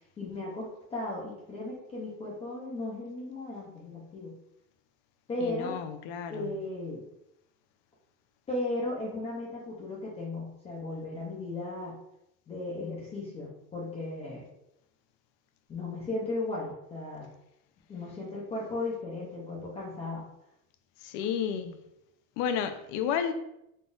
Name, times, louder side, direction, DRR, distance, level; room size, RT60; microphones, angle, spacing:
voice 1, 0.2-4.3 5.3-5.8 6.3-7.0 8.5-11.9 12.5-14.5 15.7-17.3 17.9-20.2, left 2 dB, 15° left, 0.4 m, -36 dB
voice 2, 5.4-6.5 21.0-21.8 22.4-23.3, left 8 dB, 70° left, 0.6 m, -31 dB
3.9 x 2.4 x 3.8 m
cardioid pair, 180°, 41 cm